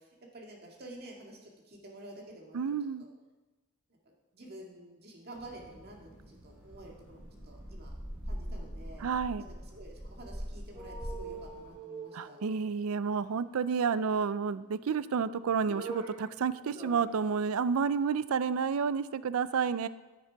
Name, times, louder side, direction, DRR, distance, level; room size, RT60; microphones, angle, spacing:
voice 1, 0.0-3.1 4.0-7.9 8.3-9.1 9.4-12.4, right 1 dB, 45° right, -1 dB, 2.0 m, -50 dB
voice 2, 2.5-3.0 9.0-9.4 12.1-19.9, right 6 dB, 80° right, 16 dB, 0.4 m, -30 dB
sound 1, 5.3-11.7, equal, 5° right, 4.0 m, -43 dB
sound 2, 10.7-13.3 14.5-15.1 15.4-16.3 16.6-17.2 17.5-17.6, right 3 dB, 25° right, 2.1 m, -44 dB
9.6 x 9.4 x 4.6 m, 1.2 s
head